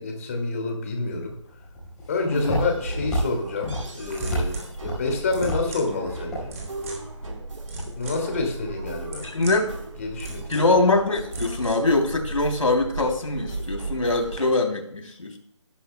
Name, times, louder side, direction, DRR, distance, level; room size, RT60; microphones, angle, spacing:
voice 1, 0.0-1.3 2.1-6.5 8.0-9.2 10.0-10.5, left 3 dB, 25° left, 3 dB, 2.5 m, -28 dB
Walk footsteps, 1.2-7.3, equal, 5° left, 4.5 m, -33 dB
voice 2, 2.3-2.6 9.2-9.7 10.5-15.4, left 2 dB, 90° left, 3 dB, 3.3 m, -23 dB
sound 1, 2.3-14.5, right 2 dB, 85° right, 4.2 m, -38 dB
sound 2, 4.0-14.4, right 2 dB, 30° right, 3.4 m, -38 dB
17.0 x 11.5 x 2.3 m, 0.72 s
figure-of-eight pair, 170°, 17 cm